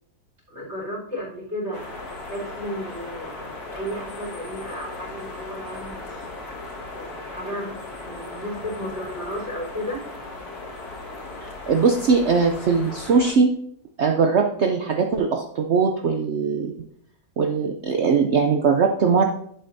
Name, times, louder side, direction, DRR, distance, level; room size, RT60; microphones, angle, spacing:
voice 1, 0.5-1.8 2.3-6.6 6.9-7.7 8.0-10.0, equal, 35° right, -5 dB, 4.4 m, -34 dB
sound 1, 1.7-13.3, left 2 dB, 55° left, 2.2 m, -37 dB
voice 2, 11.7-13.5 14.0-16.7 17.4-19.2, right 5 dB, 85° right, 4 dB, 0.6 m, -20 dB
11.5 x 7.8 x 2.7 m, 0.68 s
omnidirectional pair, 2.0 m